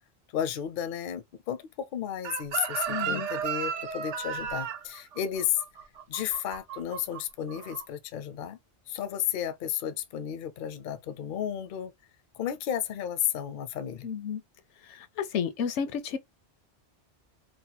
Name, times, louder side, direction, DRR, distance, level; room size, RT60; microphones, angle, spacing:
voice 1, 0.3-5.6 6.1-8.6 8.9-11.9 12.4-14.1, left 10 dB, 60° left, 0.6 m, -33 dB
Chicken rooster, 2.2-7.2 7.5-7.8, right 7 dB, 85° right, 0.9 m, -34 dB
voice 2, 2.9-3.3 14.0-14.4 14.8-16.2, left 7 dB, 80° left, 0.9 m, -32 dB
2.9 x 2.2 x 2.8 m
omnidirectional pair, 1.2 m